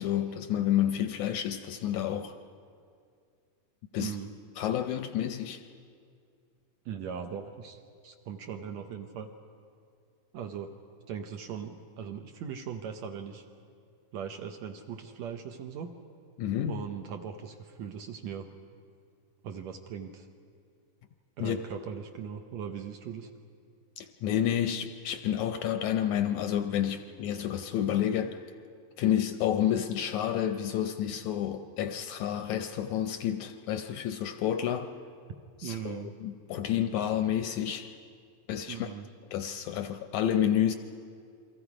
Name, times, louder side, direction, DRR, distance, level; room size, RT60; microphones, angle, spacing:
voice 1, 0.0-2.4 3.9-4.1 4.6-5.6 16.4-16.8 21.4-21.6 24.0-28.4 29.0-34.9 35.6-37.9 38.5-38.9 39.3-40.7, left 10 dB, 75° left, 8 dB, 1.8 m, -29 dB
voice 2, 4.0-4.3 6.9-9.3 10.3-10.7 11.1-13.4 14.1-15.9 16.7-18.5 19.4-20.3 21.4-23.3 35.6-36.1 38.7-39.1, right 7 dB, 70° right, 5 dB, 1.9 m, -39 dB
29.0 x 23.5 x 4.9 m, 2.3 s
omnidirectional pair, 3.9 m